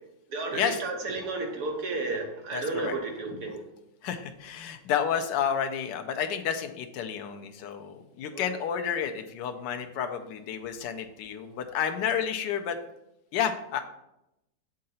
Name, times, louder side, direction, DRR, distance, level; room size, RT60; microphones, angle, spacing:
voice 1, 0.3-3.6 8.3-8.5, right 3 dB, 65° right, 3 dB, 1.3 m, -32 dB
voice 2, 2.5-3.0 4.0-12.8 13.3-13.8, left 8 dB, 80° left, 5 dB, 1.3 m, -30 dB
7.6 x 3.8 x 4.1 m, 0.86 s
omnidirectional pair, 1.9 m